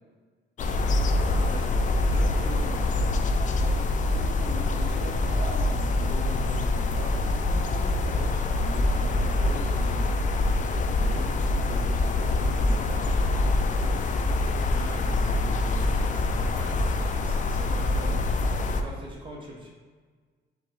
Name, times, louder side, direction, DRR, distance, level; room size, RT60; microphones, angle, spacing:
sound 1, 0.6-18.8, left 2 dB, 40° left, 0.4 m, -25 dB
voice 1, 1.1-3.3 12.5-13.0 14.6-18.2 18.6-19.7, right 1 dB, 25° right, -3 dB, 1.1 m, -42 dB
voice 2, 3.7-10.2 10.8-13.0, equal, 55° right, -3 dB, 1.1 m, -40 dB
3.8 x 3.0 x 4.6 m, 1.5 s
cardioid pair, 90°, 20 cm